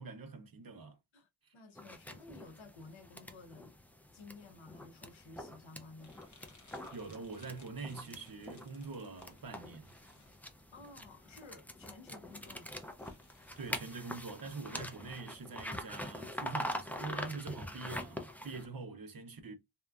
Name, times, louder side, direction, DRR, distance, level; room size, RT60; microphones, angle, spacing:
voice 1, 0.0-1.0 6.9-10.0 13.6-19.5, right 4 dB, 50° right, 0.6 m, -44 dB
voice 2, 1.1-3.8 4.1-6.2 10.7-12.7, left 3 dB, 75° left, 0.7 m, -54 dB
sound 1, 1.8-18.7, left 1 dB, 5° left, 0.4 m, -45 dB
sound 2, 6.0-13.7, left 2 dB, 40° left, 0.7 m, -64 dB
2.8 x 2.2 x 2.3 m
wide cardioid pair, 50°, 46 cm